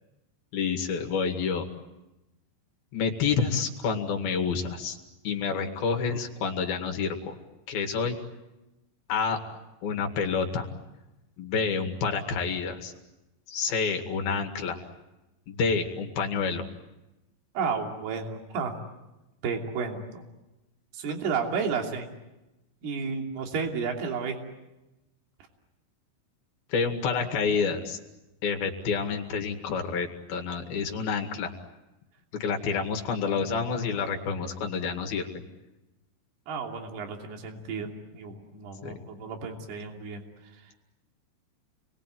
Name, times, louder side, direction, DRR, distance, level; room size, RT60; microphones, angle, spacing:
voice 1, 0.5-1.6 2.9-5.0 5.2-7.3 7.7-8.2 9.1-9.4 9.8-10.7 11.4-12.9 13.5-14.8 15.5-16.6 26.7-28.0 28.4-31.5 32.4-35.4 38.8-38.9, left 5 dB, 55° left, 4 dB, 3.4 m, -28 dB
voice 2, 17.5-18.7 19.4-20.2 20.9-22.1 22.8-24.4 36.5-40.2, right 5 dB, 55° right, 2 dB, 4.7 m, -32 dB
30.0 x 21.5 x 9.2 m, 0.99 s
omnidirectional pair, 5.7 m